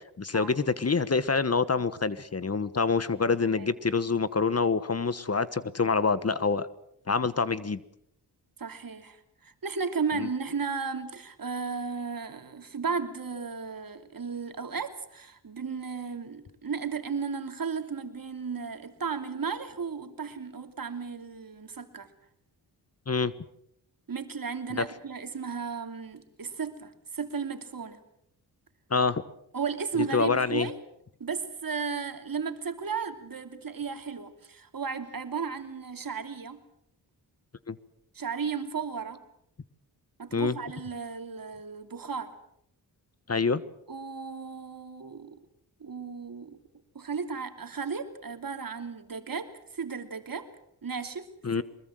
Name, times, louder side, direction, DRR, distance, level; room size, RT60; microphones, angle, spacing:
voice 1, 0.0-6.7 7.1-7.8 10.2-10.3 23.1-23.3 24.7-24.8 28.9-29.2 30.1-30.7 37.7-37.8 40.3-40.6 43.3-43.6 51.4-51.6, left 4 dB, 35° left, 15 dB, 1.2 m, -26 dB
voice 2, 8.6-22.1 24.1-28.0 29.5-30.8 31.2-36.6 38.1-39.2 40.2-42.3 43.9-45.4 45.8-46.6 46.9-50.5 50.8-51.3 51.5-51.6, right 5 dB, 55° right, 7 dB, 3.0 m, -34 dB
24.0 x 21.5 x 7.7 m, 0.74 s
cardioid pair, 70°, 41 cm